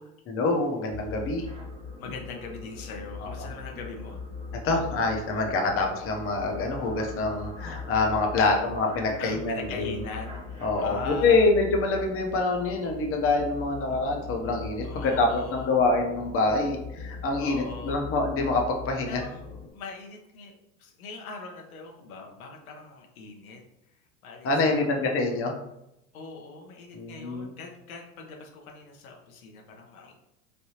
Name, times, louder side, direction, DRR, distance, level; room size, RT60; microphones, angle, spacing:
voice 1, 0.3-1.4 3.2-3.3 4.6-10.0 10.6-19.2 24.4-25.5 26.9-27.5, left 3 dB, 30° left, 2 dB, 0.7 m, -26 dB
sound 1, 0.9-19.7, left 4 dB, 15° right, 0.5 m, -40 dB
voice 2, 2.0-4.2 8.4-8.6 9.2-11.5 14.8-15.7 17.4-18.0 19.1-20.5 20.8-23.6 24.2-25.4 26.1-30.2, left 4 dB, 90° left, 2 dB, 0.8 m, -41 dB
3.3 x 2.6 x 2.8 m, 0.86 s
supercardioid pair, 105°, 41 cm